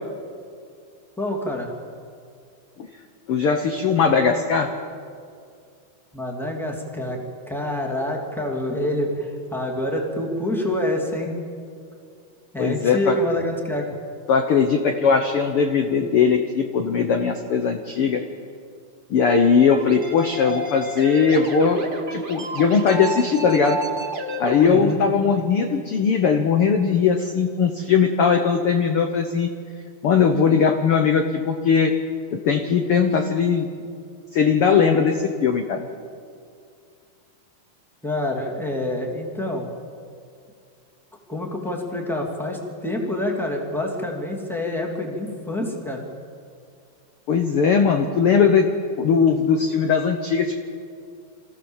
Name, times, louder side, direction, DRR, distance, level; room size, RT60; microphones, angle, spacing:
voice 1, 1.2-1.7 6.1-7.2 7.5-11.4 12.5-13.9 24.6-25.0 38.0-39.7 41.3-46.0, left 1 dB, ahead, 0 dB, 2.2 m, -27 dB
voice 2, 3.3-4.7 12.6-13.1 14.3-18.2 19.1-21.8 22.1-23.8 24.4-29.5 30.0-31.9 32.3-33.7 34.3-35.8 47.3-48.7 49.0-50.6, left 6 dB, 75° left, 5 dB, 1.2 m, -19 dB
sound 1, 19.7-24.8, right 2 dB, 20° right, 1.4 m, -30 dB
26.0 x 15.5 x 7.2 m, 2.3 s
omnidirectional pair, 4.1 m